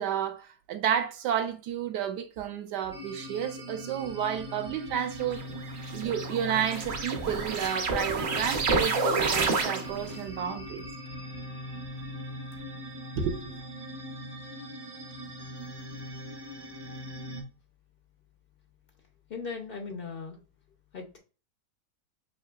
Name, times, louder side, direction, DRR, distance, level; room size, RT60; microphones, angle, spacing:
voice 1, 0.0-5.4 5.9-10.8 13.2-13.6, right 8 dB, 75° right, 1.2 m, -31 dB
sound 1, 2.9-17.4, equal, 25° right, 0.5 m, -41 dB
sound 2, 5.2-10.2, right 4 dB, 55° right, 0.8 m, -29 dB
voice 2, 19.3-20.4 20.9-21.2, left 5 dB, 85° left, 0.5 m, -38 dB
6.4 x 2.7 x 2.3 m
omnidirectional pair, 1.9 m